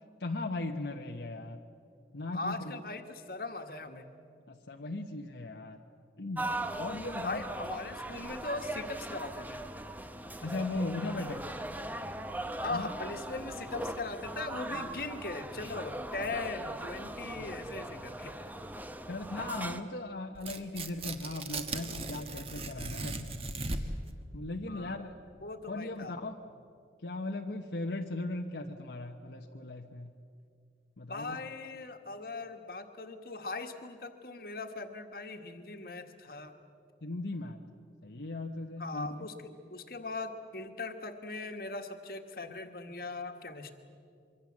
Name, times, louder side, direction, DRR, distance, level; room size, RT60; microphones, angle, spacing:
voice 1, 0.2-1.6 2.1-2.8 4.5-5.8 6.2-6.5 6.8-7.4 10.4-11.4 12.7-12.9 17.3-18.0 19.1-24.0 24.3-25.2 25.7-26.4 27.0-30.1 31.0-31.4 37.0-37.6 38.0-39.2, left 2 dB, 75° left, 3 dB, 1.1 m, -38 dB
voice 2, 2.3-4.1 7.2-9.6 12.6-18.5 24.7-25.0 25.4-26.1 31.1-36.5 38.8-43.7, left 3 dB, 55° left, 6 dB, 1.6 m, -40 dB
sound 1, 6.4-19.8, right 1 dB, 10° right, 0.8 m, -40 dB
Tearing, 20.4-24.1, right 2 dB, 35° right, 1.3 m, -38 dB
25.0 x 24.0 x 7.4 m, 2.4 s
head